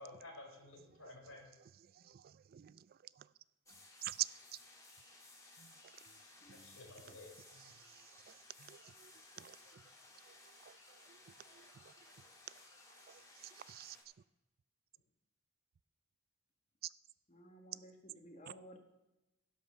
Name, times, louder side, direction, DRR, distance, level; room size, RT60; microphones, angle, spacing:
voice 1, 0.0-1.5 6.5-7.6, left 2 dB, 75° left, 4.1 m, -53 dB
voice 2, 1.9-2.9 3.2-3.3 4.0-4.3 5.6-5.7 6.1-6.2 6.6-6.8 7.9-9.1 9.4-9.8 10.3-10.4 10.7-10.8 11.1-11.2 11.5-11.9 13.1-14.0, right 15 dB, 45° right, 0.3 m, -46 dB
sound 1, 3.7-14.0, left 2 dB, 15° left, 1.7 m, -60 dB
voice 3, 17.3-18.8, equal, 35° left, 1.4 m, -56 dB
16.5 x 5.5 x 6.2 m
head